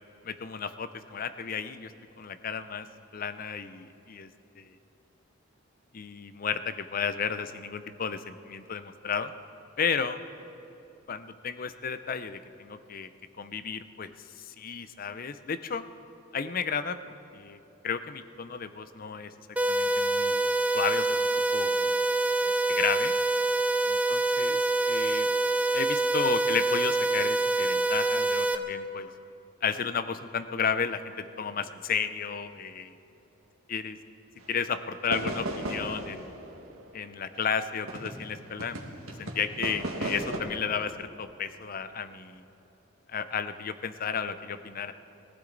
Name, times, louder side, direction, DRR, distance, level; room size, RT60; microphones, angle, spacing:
voice 1, 0.2-1.9 2.2-2.9 3.1-4.3 4.6-4.7 5.9-9.3 9.8-10.2 11.1-13.1 13.4-14.1 14.4-15.8 16.3-17.0 17.3-17.6 17.8-19.3 19.7-20.5 20.7-21.2 21.5-22.0 22.4-23.1 23.9-24.6 24.9-25.3 25.7-29.1 29.6-32.9 33.7-34.0 34.5-36.3 36.9-38.8 39.2-42.4 43.1-44.9, left 6 dB, 45° left, 12 dB, 0.5 m, -33 dB
sound 1, 19.6-28.6, right 2 dB, 5° right, 0.4 m, -26 dB
sound 2, 34.4-34.6 35.1-38.3 38.6-40.4, right 1 dB, 90° right, 1.7 m, -35 dB
21.5 x 15.5 x 3.9 m, 2.9 s
head